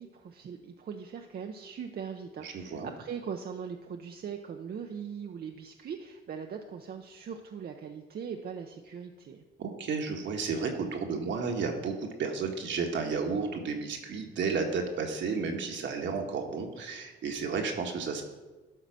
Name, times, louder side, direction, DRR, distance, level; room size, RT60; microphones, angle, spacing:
voice 1, 0.0-9.4, right 7 dB, 50° right, 4 dB, 0.7 m, -40 dB
voice 2, 2.4-2.9 9.6-18.2, right 5 dB, 65° right, 2 dB, 1.5 m, -32 dB
12.0 x 4.0 x 6.1 m, 1.2 s
cardioid pair, 90°, 20 cm